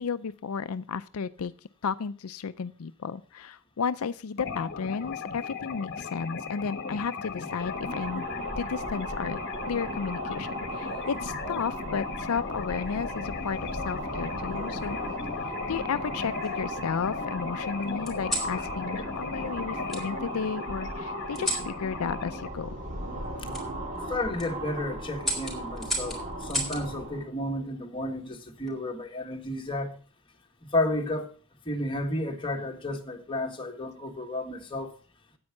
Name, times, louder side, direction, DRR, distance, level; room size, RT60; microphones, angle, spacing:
voice 1, 0.0-1.5 1.8-8.2 8.6-9.4 9.7-15.0 15.7-22.7, left 6 dB, 80° left, 0.5 m, -33 dB
sound 1, 4.4-22.5, left 5 dB, 55° left, 1.2 m, -36 dB
sound 2, 7.4-27.3, right 2 dB, 35° right, 2.3 m, -38 dB
sound 3, 10.7-11.8 12.8-13.3 14.5-15.3 15.9-16.8 18.1-18.6 19.9-20.0 21.3-21.7 23.5-23.7 24.2-24.5 25.2-26.8 28.3-28.7, equal, ahead, 3.7 m, -35 dB
voice 2, 23.9-30.0 30.6-31.3 31.7-34.9, left 1 dB, 25° left, 1.6 m, -32 dB
9.7 x 8.7 x 5.8 m
head